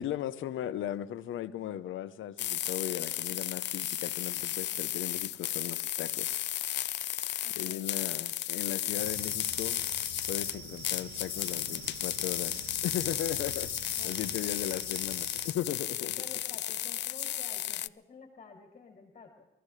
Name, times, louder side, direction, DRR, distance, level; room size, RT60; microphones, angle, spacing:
voice 1, 0.0-6.5 7.6-9.8 10.3-16.1, left 11 dB, 80° left, 1.0 m, -37 dB
sound 1, 2.4-17.9, left 13 dB, 60° left, 0.5 m, -34 dB
voice 2, 7.4-8.0 14.0-14.5 16.0-19.5, left 5 dB, 40° left, 3.0 m, -51 dB
sound 2, 8.9-15.5, right 5 dB, 85° right, 4.4 m, -45 dB
24.5 x 15.0 x 3.3 m
cardioid pair, 90°, 20 cm